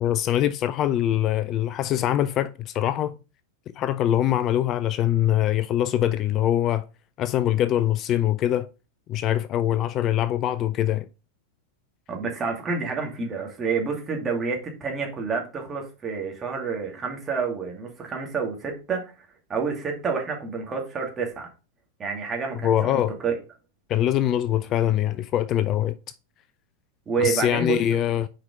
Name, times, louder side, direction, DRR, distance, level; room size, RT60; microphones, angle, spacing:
voice 1, 0.0-3.2 3.8-6.9 7.2-8.7 9.1-11.1 22.6-23.1 23.9-26.0 27.2-28.3, left 11 dB, 35° left, 0.3 m, -23 dB
voice 2, 12.1-19.1 19.5-21.5 22.0-23.3 27.1-27.8, right 5 dB, 20° right, 2.3 m, -28 dB
6.5 x 5.0 x 3.8 m
figure-of-eight pair, 90°, 0 cm